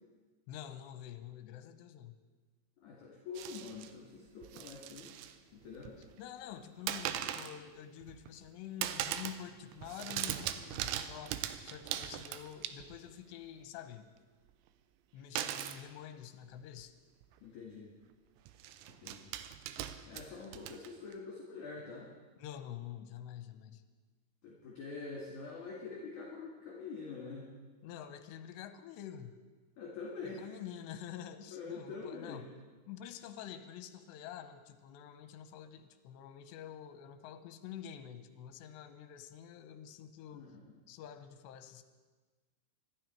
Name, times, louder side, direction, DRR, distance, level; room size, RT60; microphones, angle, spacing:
voice 1, 0.5-2.1 6.2-14.1 15.1-16.9 22.4-23.8 27.8-29.4 30.2-32.5 32.9-40.5 40.9-41.8, left 10 dB, 75° left, 9 dB, 3.0 m, -47 dB
voice 2, 2.8-5.9 17.4-17.9 19.0-19.3 20.1-22.1 24.4-27.5 29.8-30.5 31.5-32.4 40.3-40.7, left 4 dB, 50° left, -4 dB, 3.3 m, -45 dB
sound 1, 3.4-3.9 4.4-5.4 5.6-6.2 6.9-7.6 8.0-8.5 8.8-9.5 9.7-13.1 15.4-15.8 16.8-16.9 17.2-17.4 18.5-21.1, right 11 dB, 85° right, 3.0 m, -40 dB
25.0 x 12.0 x 4.6 m, 1.3 s
omnidirectional pair, 5.3 m